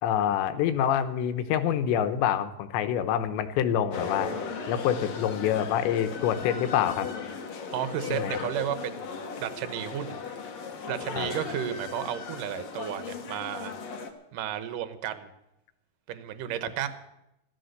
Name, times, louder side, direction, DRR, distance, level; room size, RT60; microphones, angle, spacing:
voice 1, 0.0-4.4 4.7-7.1 8.1-8.4 11.2-11.3, left 9 dB, 85° left, 10 dB, 3.3 m, -26 dB
sound 1, 3.9-14.1, left 5 dB, 60° left, 1.9 m, -37 dB
voice 2, 7.7-10.2 10.9-13.7 14.3-15.3 16.1-16.9, right 10 dB, 70° right, 10 dB, 2.1 m, -33 dB
16.0 x 12.5 x 6.6 m, 0.87 s
omnidirectional pair, 5.0 m